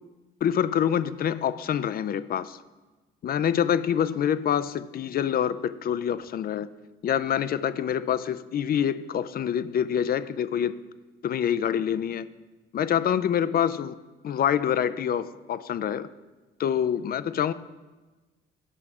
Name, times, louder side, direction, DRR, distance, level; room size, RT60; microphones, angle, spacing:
voice 1, 0.4-2.6 3.2-6.7 7.0-10.8 11.2-12.3 12.7-14.0 14.2-16.1 16.6-17.5, left 9 dB, 50° left, 0.4 m, -26 dB
9.7 x 5.7 x 4.8 m
cardioid pair, 90°, 20 cm